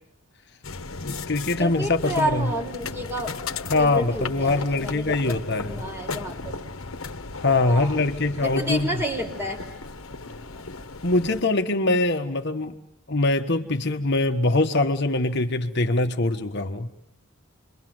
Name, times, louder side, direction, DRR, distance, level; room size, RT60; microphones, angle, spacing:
sound 1, 0.6-11.4, left 3 dB, 80° left, 1.4 m, -36 dB
voice 1, 1.0-2.5 3.7-5.8 7.4-9.0 11.0-12.7 13.1-16.9, left 2 dB, 55° left, 6 dB, 1.4 m, -23 dB
voice 2, 1.6-3.4 3.7-5.1 5.6-6.6 7.6-8.0 8.4-9.6, equal, 10° right, 2 dB, 4.8 m, -30 dB
29.0 x 23.0 x 7.8 m, 0.72 s
head